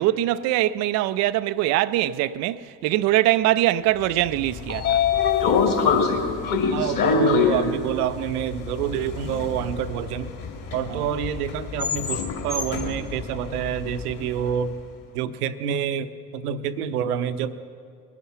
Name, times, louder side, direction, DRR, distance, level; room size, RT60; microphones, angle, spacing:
voice 1, 0.0-5.0 10.9-11.1, right 14 dB, 40° right, 0.4 m, -22 dB
Train / Sliding door, 4.3-14.4, left 6 dB, 40° left, 2.5 m, -25 dB
voice 2, 6.7-10.3 10.7-14.8 15.1-17.6, right 9 dB, 70° right, 0.8 m, -27 dB
20.5 x 11.0 x 5.8 m
figure-of-eight pair, 60°, 48 cm